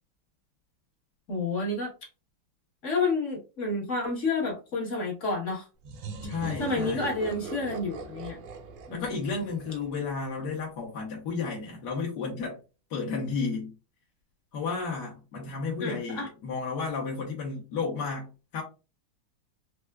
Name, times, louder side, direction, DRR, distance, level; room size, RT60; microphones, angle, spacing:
voice 1, 1.3-1.9 2.8-5.6 6.6-8.4 8.9-9.0 15.8-16.3, left 3 dB, 45° left, 1.2 m, -29 dB
sound 1, 5.8-10.4, right 3 dB, 70° right, 1.2 m, -40 dB
voice 2, 6.2-7.1 8.9-12.6 12.9-13.7 14.5-18.6, left 4 dB, 60° left, 1.3 m, -32 dB
4.6 x 2.1 x 2.2 m
omnidirectional pair, 2.3 m